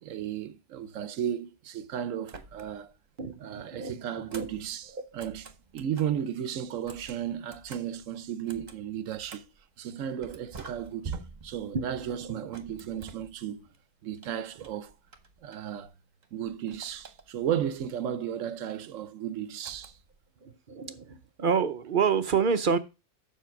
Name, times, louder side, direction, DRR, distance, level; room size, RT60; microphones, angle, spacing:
voice 1, 0.0-2.9 3.4-9.5 9.8-11.2 11.4-13.7 14.0-14.9 15.4-15.9 16.3-19.9, right 9 dB, 65° right, 1.0 m, -34 dB
sound 1, 2.2-3.0 3.3-6.2 6.7-9.6 10.2-13.8 14.2-15.9 16.2-17.6 19.6-20.2, right 4 dB, 35° right, 1.0 m, -47 dB
voice 2, 3.2-4.5 4.9-5.1 11.7-12.5 20.4-22.8, right 6 dB, 50° right, 0.6 m, -29 dB
7.4 x 5.8 x 5.9 m
omnidirectional pair, 1.6 m